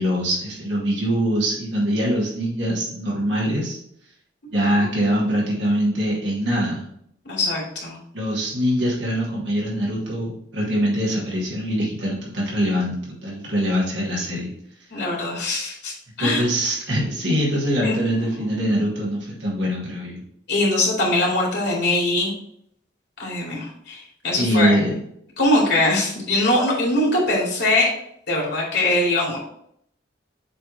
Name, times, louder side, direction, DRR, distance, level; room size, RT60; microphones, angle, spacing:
voice 1, 0.0-3.8 4.5-6.9 8.1-14.5 16.2-20.2 24.4-24.9, equal, 75° right, -5 dB, 2.2 m, -23 dB
voice 2, 7.2-8.0 14.9-16.4 17.8-18.0 18.4-18.8 20.5-22.3 23.2-24.8 25.4-27.9 28.3-29.4, left 1 dB, 65° left, -3 dB, 2.4 m, -22 dB
7.6 x 3.4 x 4.0 m, 0.70 s
head